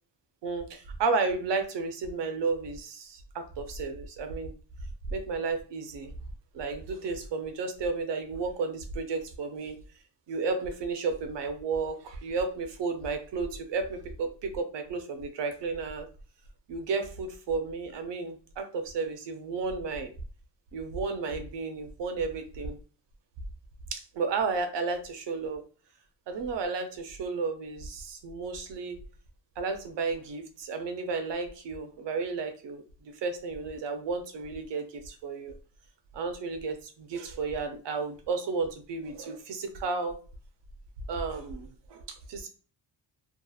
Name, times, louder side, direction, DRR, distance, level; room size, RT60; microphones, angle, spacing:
voice 1, 0.4-4.5 5.1-6.1 6.5-9.8 10.3-16.1 16.7-20.1 20.7-22.8 23.9-25.6 26.3-29.0 29.6-32.8 33.2-35.5 36.1-40.2 41.1-42.0 42.3-42.5, right 4 dB, 70° right, 7 dB, 0.6 m, -32 dB
2.8 x 2.4 x 2.3 m, 0.38 s
wide cardioid pair, 140°, 44 cm